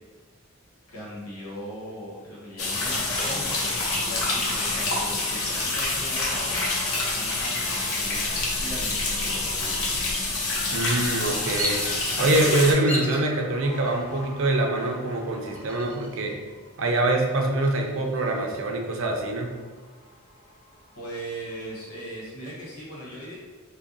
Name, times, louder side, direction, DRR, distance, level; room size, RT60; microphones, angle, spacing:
voice 1, 0.9-6.7 7.1-9.8 20.9-23.3, equal, 90° left, -6 dB, 1.3 m, -39 dB
sound 1, 2.6-12.7, left 2 dB, 70° left, 0.7 m, -27 dB
sound 2, 2.9-22.1, equal, 30° left, 0.8 m, -46 dB
voice 2, 10.7-11.8 12.2-16.4 16.8-19.5, right 2 dB, 65° right, 2 dB, 0.5 m, -24 dB
Bird vocalization bird call bird song, 11.5-12.3 12.8-13.3 13.9-14.4 15.5-16.3 16.6-16.7 17.2-18.6, equal, 5° left, 0.4 m, -34 dB
3.4 x 2.2 x 3.8 m, 1.5 s
head